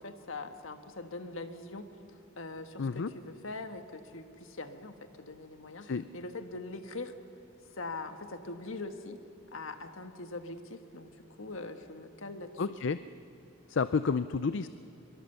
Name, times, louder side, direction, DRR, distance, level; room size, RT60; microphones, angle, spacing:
voice 1, 0.0-7.2 7.7-9.2 9.5-12.6, left 2 dB, 80° left, 7 dB, 1.5 m, -42 dB
voice 2, 2.8-3.1 5.8-6.0 12.6-13.0 13.7-14.7, left 5 dB, 65° left, 13 dB, 0.5 m, -30 dB
24.5 x 23.0 x 6.9 m, 2.8 s
head